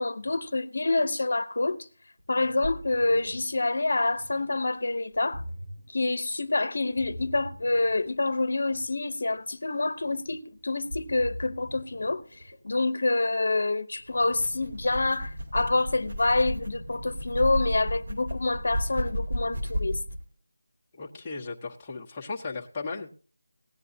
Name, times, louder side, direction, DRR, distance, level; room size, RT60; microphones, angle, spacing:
voice 1, 0.0-1.8 2.3-5.4 5.9-12.2 12.6-20.0, left 2 dB, 60° left, 0.9 m, -27 dB
Ocean, 2.2-13.0, equal, 85° right, 6.7 m, -43 dB
sound 1, 14.1-20.2, equal, 45° right, 3.8 m, -33 dB
voice 2, 20.9-23.1, left 4 dB, 15° left, 1.0 m, -36 dB
17.5 x 9.9 x 2.7 m
figure-of-eight pair, 175°, 0 cm